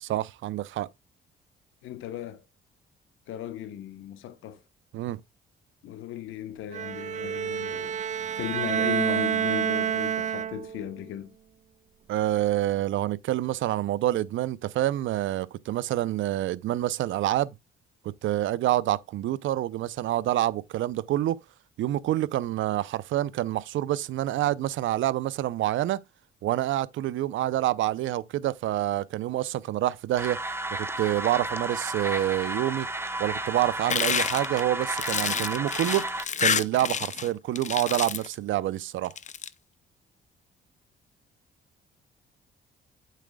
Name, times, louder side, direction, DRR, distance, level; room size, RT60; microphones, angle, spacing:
voice 1, 0.0-0.9 4.9-5.2 12.1-17.5 18.2-21.4 21.8-26.0 26.4-30.4 30.7-32.9 33.2-39.1, right 14 dB, 75° right, 0.6 m, -27 dB
voice 2, 1.8-2.4 3.3-4.6 5.8-8.1 8.3-11.3, left 11 dB, 85° left, 1.1 m, -36 dB
Bowed string instrument, 6.7-10.9, right 9 dB, 40° right, 0.4 m, -28 dB
sound 1, 30.2-36.3, right 2 dB, 10° right, 0.9 m, -32 dB
sound 2, 33.9-37.3 37.6-38.3 39.0-39.5, left 7 dB, 40° left, 0.6 m, -28 dB
8.3 x 7.7 x 2.3 m
cardioid pair, 90°, 20 cm